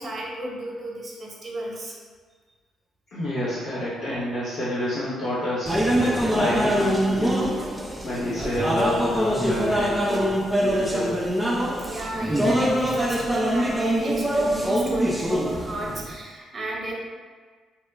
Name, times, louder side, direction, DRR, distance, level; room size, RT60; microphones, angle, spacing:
voice 1, 0.0-1.9 9.6-9.8 11.8-16.9, right 1 dB, 40° right, -3 dB, 0.7 m, -32 dB
voice 2, 3.1-7.6 8.0-11.2, left 1 dB, 65° left, -11 dB, 0.6 m, -29 dB
sound 1, 5.7-16.1, equal, 5° right, 0.4 m, -24 dB
2.2 x 2.0 x 3.2 m, 1.5 s
supercardioid pair, 60°, 0 cm